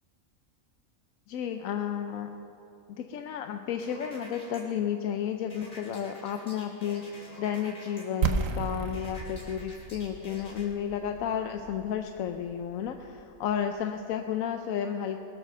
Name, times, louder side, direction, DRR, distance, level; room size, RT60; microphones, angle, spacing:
voice 1, 1.3-2.3 2.9-15.2, left 8 dB, 90° left, 6 dB, 1.0 m, -32 dB
sound 1, 3.8-4.6 5.5-8.0 8.9-10.7, left 1 dB, 40° left, 2.9 m, -48 dB
sound 2, 8.2-14.0, right 5 dB, 75° right, 1.2 m, -34 dB
20.0 x 7.6 x 6.6 m, 2.9 s
omnidirectional pair, 1.4 m